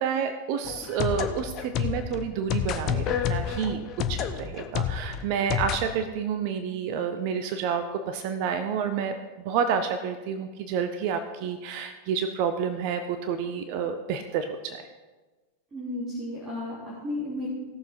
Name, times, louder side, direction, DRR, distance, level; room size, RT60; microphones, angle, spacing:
voice 1, 0.0-3.8 4.1-9.1 9.4-14.8, right 7 dB, 45° right, 8 dB, 0.7 m, -29 dB
sound 1, 0.6-5.8, left 9 dB, 35° left, 0.8 m, -29 dB
voice 2, 15.7-17.5, left 1 dB, 20° right, -8 dB, 3.5 m, -33 dB
17.0 x 6.9 x 4.5 m, 1.2 s
figure-of-eight pair, 90°, 0 cm